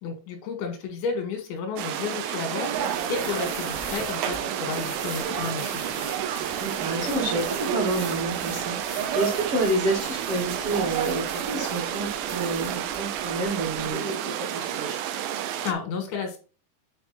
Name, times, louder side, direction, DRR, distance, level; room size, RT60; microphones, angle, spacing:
voice 1, 0.0-5.9 15.6-16.4, left 5 dB, 85° left, 5 dB, 4.1 m, -32 dB
sound 1, 1.8-15.7, right 10 dB, 85° right, 3.0 m, -31 dB
sound 2, 2.5-12.6, right 7 dB, 70° right, 2.5 m, -34 dB
sound 3, 2.7-14.0, left 1 dB, 20° left, 0.4 m, -43 dB
voice 2, 6.3-15.0, right 2 dB, 50° right, -2 dB, 1.8 m, -29 dB
9.2 x 4.7 x 4.2 m, 0.34 s
omnidirectional pair, 5.1 m